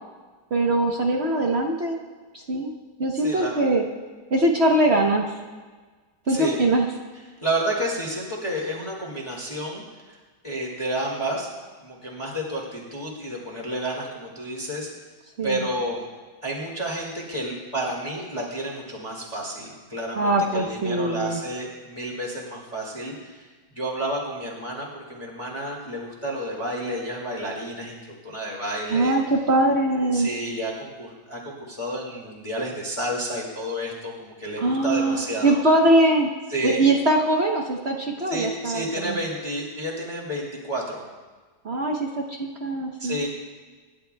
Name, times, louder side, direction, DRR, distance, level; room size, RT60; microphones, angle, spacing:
voice 1, 0.5-2.0 2.5-2.7 3.0-3.8 4.3-5.3 6.3-6.9 15.4-15.6 20.2-21.4 28.9-30.3 34.6-36.3 36.6-39.2 41.6-43.2, right 1 dB, 45° right, 1 dB, 0.9 m, -22 dB
voice 2, 3.2-3.6 6.3-6.6 7.4-10.2 10.4-11.5 11.8-14.9 15.4-16.1 16.4-23.4 23.7-29.2 30.1-35.6 36.5-36.8 38.3-41.0 43.0-43.3, right 1 dB, 15° left, -3 dB, 2.2 m, -30 dB
26.5 x 11.0 x 2.3 m, 1.4 s
omnidirectional pair, 2.3 m